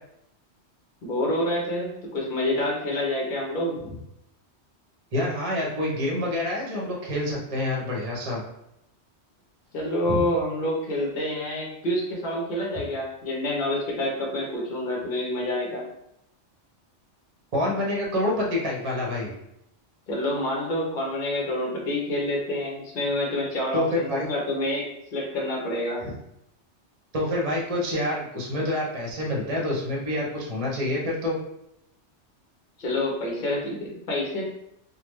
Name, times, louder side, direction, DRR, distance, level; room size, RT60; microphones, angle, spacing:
voice 1, 1.0-3.8 9.7-15.9 20.1-26.0 32.8-34.4, left 1 dB, 50° left, -1 dB, 0.9 m, -27 dB
voice 2, 5.1-8.4 10.1-10.2 17.5-19.3 23.7-24.3 26.0-26.1 27.1-31.4, left 1 dB, 35° right, -2 dB, 0.7 m, -27 dB
3.6 x 2.1 x 3.0 m, 0.80 s
omnidirectional pair, 1.2 m